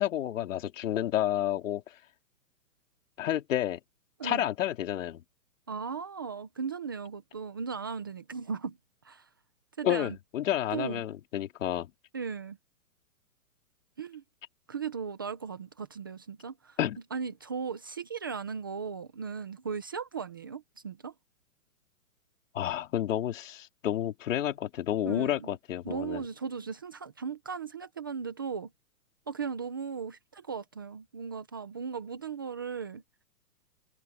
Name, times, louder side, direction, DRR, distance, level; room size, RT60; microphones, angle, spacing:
voice 1, 0.0-1.8 3.2-3.8 4.2-5.2 9.8-11.9 16.8-17.0 22.5-26.2, left 12 dB, 55° left, 3.1 m, -30 dB
voice 2, 5.7-8.8 9.0-9.3 9.8-10.2 10.7-11.0 12.1-12.6 14.0-14.2 14.7-16.8 17.1-21.1 25.0-25.6 25.8-28.7 29.3-33.0, right 6 dB, 15° right, 0.5 m, -37 dB
hypercardioid pair, 160°, 46 cm